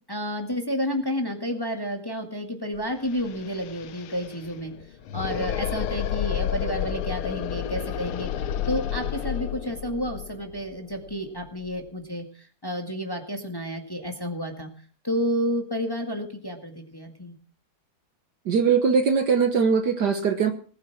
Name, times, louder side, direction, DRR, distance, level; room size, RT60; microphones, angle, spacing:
voice 1, 0.1-4.7 5.1-14.7 15.0-17.4, equal, 10° left, 4 dB, 1.8 m, -30 dB
sound 1, 2.7-2.8 3.0-11.9, left 10 dB, 90° left, 1.8 m, -31 dB
voice 2, 18.5-20.5, right 6 dB, 55° right, 7 dB, 1.6 m, -21 dB
19.0 x 9.0 x 5.9 m, 0.42 s
omnidirectional pair, 2.3 m